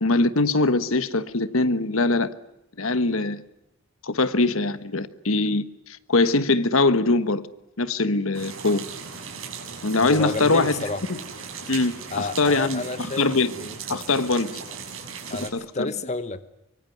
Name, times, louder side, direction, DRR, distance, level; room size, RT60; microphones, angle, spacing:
voice 1, 0.0-2.3 2.8-3.4 4.0-7.4 7.8-8.8 9.8-10.7 11.1-11.2 11.7-13.5 13.9-14.6 15.5-15.9, left 3 dB, 75° left, 13 dB, 1.3 m, -22 dB
sound 1, 8.3-15.5, right 6 dB, 65° right, 6.0 m, -38 dB
voice 2, 10.0-11.0 12.1-13.3 13.6-14.0 15.3-16.5, left 3 dB, 30° left, 12 dB, 1.0 m, -31 dB
25.0 x 23.5 x 9.3 m, 0.86 s
head